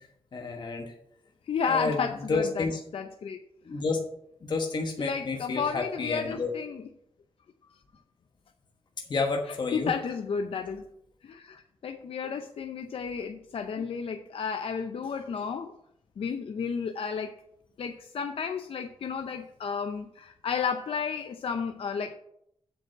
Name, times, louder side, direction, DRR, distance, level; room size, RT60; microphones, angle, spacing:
voice 1, 0.3-0.9 1.7-2.8 3.6-4.1 4.4-6.5 9.1-9.9, left 3 dB, 45° left, 2 dB, 1.2 m, -30 dB
voice 2, 1.5-3.4 5.0-6.8 9.7-10.8 11.2-15.7 16.2-17.3 17.8-22.1, left 6 dB, 65° left, 6 dB, 0.6 m, -32 dB
7.7 x 5.2 x 7.5 m, 0.74 s
wide cardioid pair, 135°, 10 cm